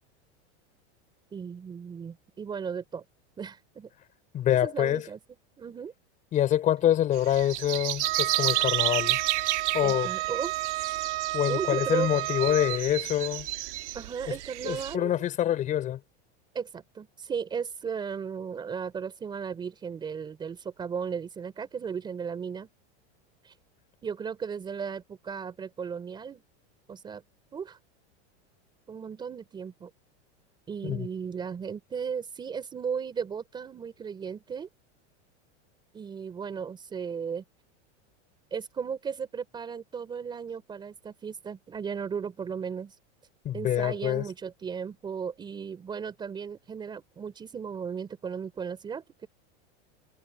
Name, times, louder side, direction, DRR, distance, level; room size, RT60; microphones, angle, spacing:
voice 1, 1.3-3.0 3.4-3.9 4.6-5.2 5.6-5.9 9.8-10.5 11.5-12.1 13.9-15.3 16.5-22.7 23.4-23.5 24.0-26.4 26.9-27.2 27.5-27.8 28.9-29.9 30.7-34.7 35.9-37.4 38.5-43.0 43.5-49.3, right 6 dB, 15° right, 3.8 m, -35 dB
voice 2, 4.3-5.0 6.3-9.2 9.7-10.1 11.3-13.5 14.6-16.0 30.8-31.1 43.4-44.2, left 11 dB, 20° left, 5.4 m, -26 dB
sound 1, 7.1-14.9, right 15 dB, 80° right, 2.3 m, -32 dB
Wind instrument woodwind instrument, 8.0-12.8, right 17 dB, 60° right, 8.0 m, -32 dB
supercardioid pair, 175°, 34 cm